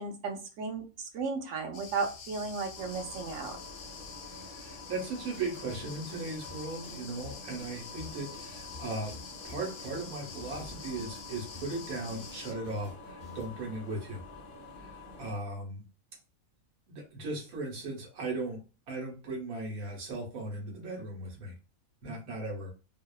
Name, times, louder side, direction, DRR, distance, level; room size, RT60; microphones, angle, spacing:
voice 1, 0.0-3.6, right 4 dB, 70° right, 3 dB, 1.0 m, -35 dB
sound 1, 1.7-12.5, left 5 dB, 85° left, 1.1 m, -47 dB
sound 2, 2.8-15.3, left 3 dB, 55° left, 0.6 m, -48 dB
voice 2, 4.2-9.1 9.4-14.2 14.8-15.8 16.9-18.6 18.9-21.5 22.0-22.7, right 2 dB, 90° right, -1 dB, 1.3 m, -37 dB
sound 3, 5.3-6.6 6.8-13.6, left 2 dB, 30° right, 0.8 m, -49 dB
2.8 x 2.1 x 2.3 m, 0.34 s
omnidirectional pair, 1.5 m